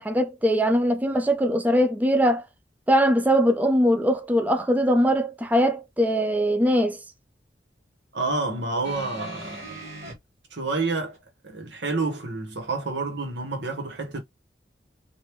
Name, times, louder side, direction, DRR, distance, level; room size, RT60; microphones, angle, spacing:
voice 1, 0.0-2.4 2.9-7.0, equal, 10° right, 0.4 m, -21 dB
voice 2, 8.1-9.7 10.5-11.2 11.4-14.2, right 3 dB, 90° right, 1.3 m, -29 dB
sound 1, 8.8-10.1 11.1-11.2, right 1 dB, 40° right, 1.5 m, -39 dB
3.4 x 2.6 x 3.0 m
head